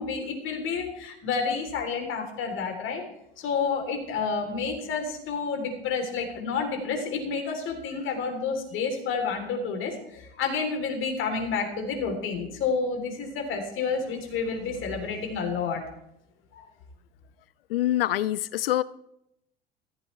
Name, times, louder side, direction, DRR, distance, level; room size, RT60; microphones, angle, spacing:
voice 1, 0.0-3.0 3.4-15.8 16.5-16.6, left 5 dB, 40° left, 3.7 m, -30 dB
voice 2, 17.7-18.8, left 13 dB, 65° left, 0.5 m, -25 dB
15.0 x 15.0 x 3.4 m
figure-of-eight pair, 75°, 31 cm